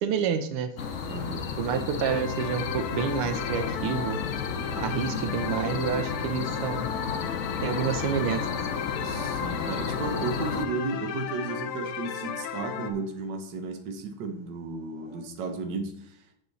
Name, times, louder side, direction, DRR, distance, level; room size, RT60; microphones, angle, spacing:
voice 1, 0.0-0.7 1.6-4.2 4.8-6.9 7.6-8.5, right 7 dB, 90° right, 9 dB, 1.7 m, -28 dB
sound 1, 0.8-10.7, left 6 dB, 70° left, 0.7 m, -32 dB
voice 2, 1.1-1.5 9.0-16.4, right 3 dB, 60° right, 5 dB, 1.6 m, -34 dB
sound 2, 2.0-12.9, left 8 dB, 85° left, 1.6 m, -35 dB
Dog / Siren, 3.4-6.7 8.1-13.3 14.9-15.3, right 3 dB, 20° right, 0.7 m, -47 dB
7.6 x 6.8 x 4.1 m, 0.69 s
omnidirectional pair, 2.4 m